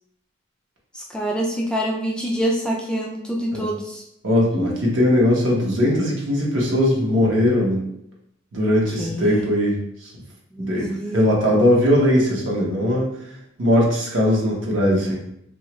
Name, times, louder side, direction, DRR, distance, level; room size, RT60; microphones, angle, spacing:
voice 1, 0.9-4.0 4.5-4.8 9.0-9.4 10.5-11.2, equal, 5° left, -1 dB, 0.3 m, -26 dB
voice 2, 4.2-7.8 8.5-10.1 10.7-13.1 13.6-15.2, left 1 dB, 70° right, -3 dB, 0.9 m, -19 dB
2.8 x 2.3 x 3.0 m, 0.76 s
head